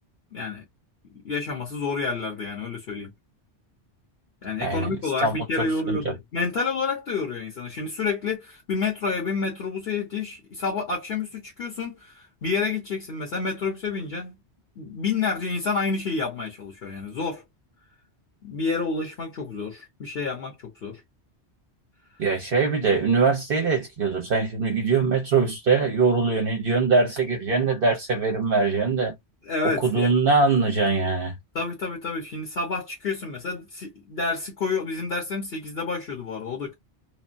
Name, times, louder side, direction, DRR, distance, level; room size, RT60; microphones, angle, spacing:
voice 1, 0.3-0.6 1.1-3.1 4.4-14.4 14.8-17.4 18.4-21.0 29.5-30.1 31.5-36.7, left 4 dB, 60° left, 1.3 m, -29 dB
voice 2, 4.6-6.1 22.2-29.1 29.6-31.4, right 4 dB, 55° right, 0.9 m, -22 dB
3.2 x 2.1 x 2.6 m
omnidirectional pair, 1.2 m